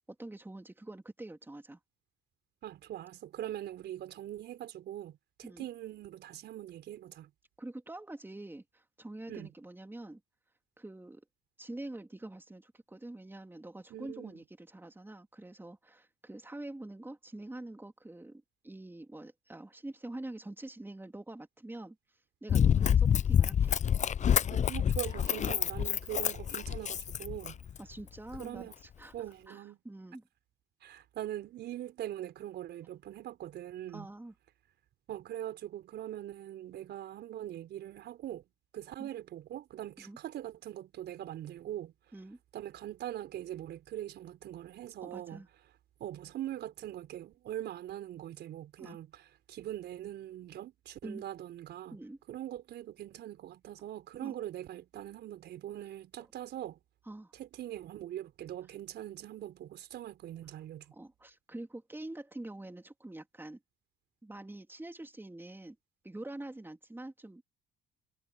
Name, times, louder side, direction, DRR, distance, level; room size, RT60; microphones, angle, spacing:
voice 1, 0.2-1.8 5.4-5.6 7.6-10.2 10.8-11.2 11.6-22.0 22.4-23.8 27.8-29.1 29.5-30.3 33.9-34.3 39.0-39.1 40.0-40.2 42.1-42.4 45.0-45.5 48.8-49.0 51.0-51.2 51.9-52.2 54.2-54.3 57.1-57.3 60.9-63.6 64.2-65.8 66.0-67.4, right 2 dB, 10° right, 3.2 m, -45 dB
voice 2, 2.6-7.3 9.3-9.5 13.9-14.4 24.5-27.6 28.4-28.7 29.1-29.8 30.8-34.1 35.1-38.4 38.7-41.9 42.5-45.4 46.0-49.2 49.5-52.0 52.3-56.8 57.3-60.9, right 12 dB, 60° right, 4.4 m, -42 dB
Run, 22.5-27.8 28.3-28.4, left 8 dB, 40° left, 0.7 m, -27 dB
hypercardioid pair, 55°, 19 cm